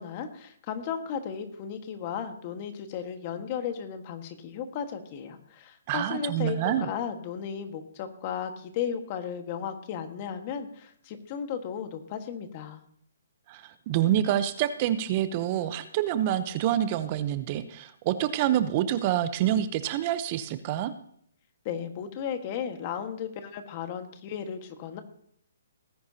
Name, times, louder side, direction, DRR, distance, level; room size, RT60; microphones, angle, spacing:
voice 1, 0.0-12.8 21.6-25.0, left 8 dB, 35° left, 7 dB, 1.6 m, -35 dB
voice 2, 5.9-6.9 13.5-20.9, right 11 dB, 35° right, 12 dB, 0.8 m, -27 dB
18.5 x 10.5 x 2.9 m, 0.64 s
hypercardioid pair, 145°, 0 cm